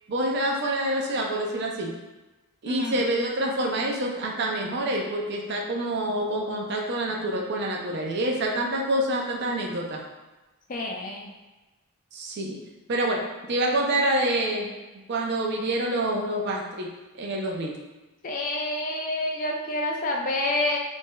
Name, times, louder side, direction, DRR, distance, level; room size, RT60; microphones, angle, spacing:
voice 1, 0.1-2.0 2.6-10.0 12.1-12.6 12.9-14.7 15.1-16.9 17.2-17.7, right 1 dB, 50° right, -1 dB, 0.4 m, -27 dB
voice 2, 2.7-3.0 10.7-11.3 18.2-20.8, left 1 dB, 35° left, 0 dB, 0.4 m, -28 dB
3.5 x 2.6 x 2.2 m, 1.1 s
head